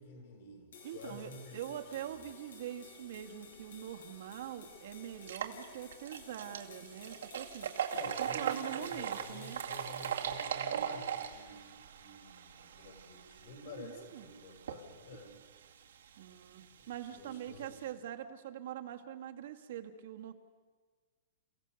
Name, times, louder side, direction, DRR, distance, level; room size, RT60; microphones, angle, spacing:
voice 1, 0.0-2.1 7.9-15.3 16.7-17.7, left 1 dB, 50° left, 2 dB, 6.8 m, -50 dB
sound 1, 0.7-10.3, left 5 dB, 85° left, 6.4 m, -55 dB
voice 2, 0.8-9.6 13.6-14.3 16.2-16.6 16.9-20.3, right 11 dB, 50° right, 5 dB, 1.5 m, -44 dB
sound 2, 3.9-4.0 4.4-4.5 5.1-17.9, right 8 dB, 85° right, 2.2 m, -41 dB
29.5 x 16.5 x 6.9 m, 1.5 s
supercardioid pair, 180°, 0 cm